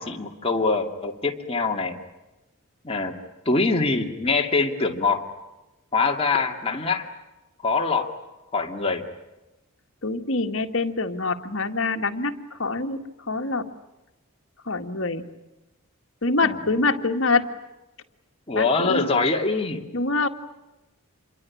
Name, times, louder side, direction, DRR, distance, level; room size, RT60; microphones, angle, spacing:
voice 1, 0.0-2.0 2.8-3.1 3.5-5.3 5.9-7.1 7.6-8.1 8.5-9.1 16.4-16.6 18.5-19.9, left 3 dB, 25° left, 2 dB, 2.5 m, -24 dB
voice 2, 10.0-13.6 14.7-15.2 16.2-17.4 18.5-19.1 19.9-20.3, left 3 dB, 60° left, 5 dB, 2.0 m, -25 dB
28.0 x 22.5 x 8.6 m, 0.99 s
head